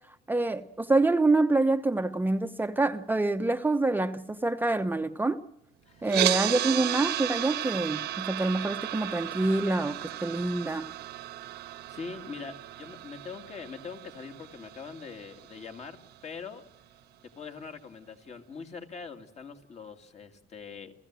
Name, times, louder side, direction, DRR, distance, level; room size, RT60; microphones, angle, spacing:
voice 1, 0.3-5.4 6.0-10.9, right 2 dB, 10° right, 0.9 m, -26 dB
sound 1, 6.1-16.2, right 14 dB, 75° right, 1.3 m, -34 dB
voice 2, 11.6-16.0 16.2-16.7 17.4-20.9, left 5 dB, 40° left, 2.7 m, -43 dB
30.0 x 15.0 x 7.6 m
cardioid pair, 110°, 17 cm